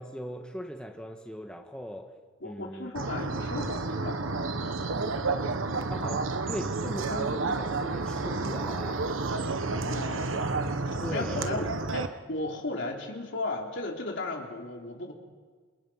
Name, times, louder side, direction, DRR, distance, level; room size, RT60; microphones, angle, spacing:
voice 1, 0.0-2.1 2.4-2.9 5.9-9.0 11.0-11.9, equal, 5° left, 2 dB, 1.6 m, -39 dB
voice 2, 2.4-4.2 9.7-10.6 10.9-15.1, left 2 dB, 65° left, 1 dB, 3.7 m, -35 dB
sound 1, 3.0-12.1, right 3 dB, 75° right, 1.2 m, -30 dB
28.5 x 27.0 x 5.8 m, 1.5 s
head